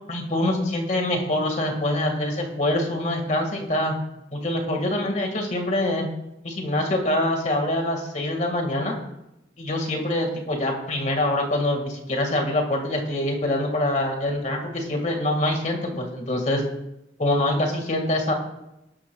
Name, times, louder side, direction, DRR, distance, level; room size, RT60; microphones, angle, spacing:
voice 1, 0.1-3.9 4.3-6.1 6.4-8.9 9.6-16.6 17.2-18.3, left 1 dB, 40° left, 3 dB, 1.8 m, -25 dB
18.5 x 12.0 x 2.3 m, 0.89 s
head